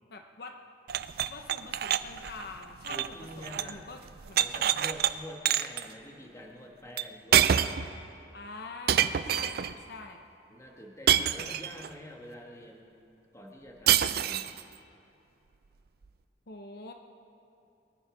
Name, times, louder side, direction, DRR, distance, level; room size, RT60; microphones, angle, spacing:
voice 1, 0.1-0.6 1.3-3.0 3.4-4.0 4.3-4.7 8.3-10.3 16.5-16.9, left 3 dB, 60° left, 5 dB, 0.8 m, -45 dB
sound 1, 0.9-3.8 4.1-5.1 5.5-5.8 7.0-7.1 7.3-7.9 8.9-9.7 11.1-11.9 13.9-14.6, right 10 dB, 60° right, 0.4 m, -26 dB
voice 2, 2.9-3.9 4.4-7.8 10.5-12.9 13.3-14.6, left 1 dB, 15° left, 0 dB, 1.6 m, -46 dB
22.5 x 10.5 x 5.1 m, 2.8 s
head